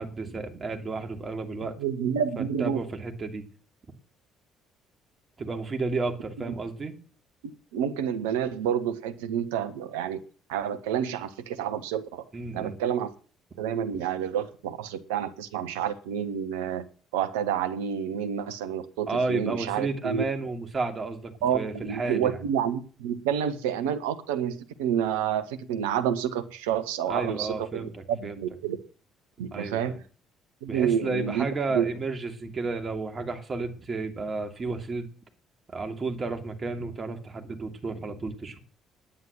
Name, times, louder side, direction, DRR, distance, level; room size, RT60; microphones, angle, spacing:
voice 1, 0.0-1.7 2.6-3.4 5.4-7.0 12.3-12.8 19.1-22.4 27.1-28.4 29.5-30.0 30.7-35.1 35.7-38.6, right 3 dB, 35° right, 4 dB, 2.7 m, -32 dB
voice 2, 1.8-2.9 7.4-10.2 10.5-12.2 12.5-13.1 13.6-16.8 17.1-20.2 21.4-28.8 29.4-30.0 30.6-31.5 31.7-31.8, right 9 dB, 70° right, 12 dB, 1.0 m, -29 dB
10.0 x 9.5 x 7.4 m, 0.41 s
figure-of-eight pair, 50°, 0 cm